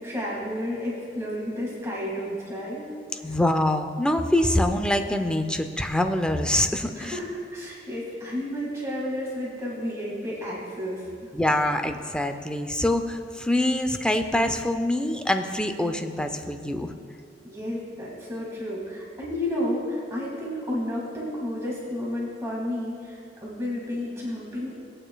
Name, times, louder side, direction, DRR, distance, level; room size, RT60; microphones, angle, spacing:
voice 1, 0.0-2.9 3.2-3.3 7.0-11.3 17.4-24.7, left 1 dB, 15° right, -5 dB, 2.0 m, -31 dB
voice 2, 3.2-7.2 11.3-16.9, left 1 dB, 5° left, 6 dB, 0.5 m, -25 dB
18.5 x 8.8 x 2.3 m, 2.3 s
head